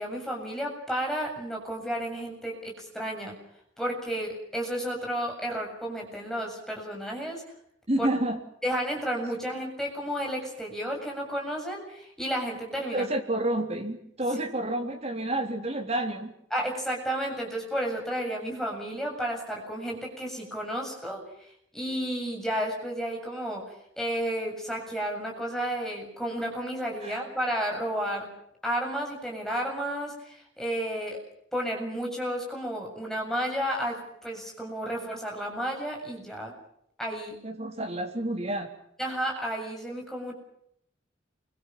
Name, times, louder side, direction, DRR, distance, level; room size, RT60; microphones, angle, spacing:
voice 1, 0.0-3.4 3.8-7.4 8.0-8.1 8.6-13.1 16.5-21.2 21.7-28.3 28.6-31.2 31.5-36.5 37.0-37.4 39.0-40.3, equal, ahead, -1 dB, 7.4 m, -32 dB
voice 2, 7.9-8.4 12.9-16.3 27.0-27.2 37.4-38.7, right 1 dB, 35° right, 3 dB, 3.7 m, -29 dB
29.0 x 24.5 x 6.2 m, 0.72 s
head